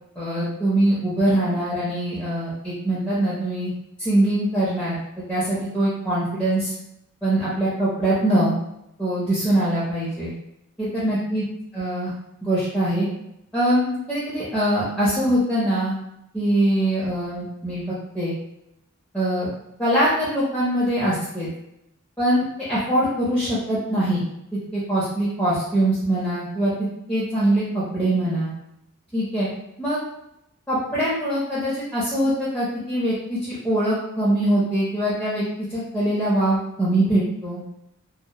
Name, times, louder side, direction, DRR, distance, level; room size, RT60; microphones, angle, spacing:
voice 1, 0.2-3.7 4.0-6.7 7.2-8.5 9.0-10.3 10.8-11.4 11.7-12.1 12.4-13.1 13.5-16.0 16.3-18.3 19.1-19.5 19.8-21.5 22.2-24.2 24.5-28.5 29.1-29.5 29.8-30.0 30.7-35.4 35.7-37.6, right 1 dB, 5° left, -10 dB, 0.5 m, -23 dB
2.7 x 2.1 x 2.2 m, 0.83 s
head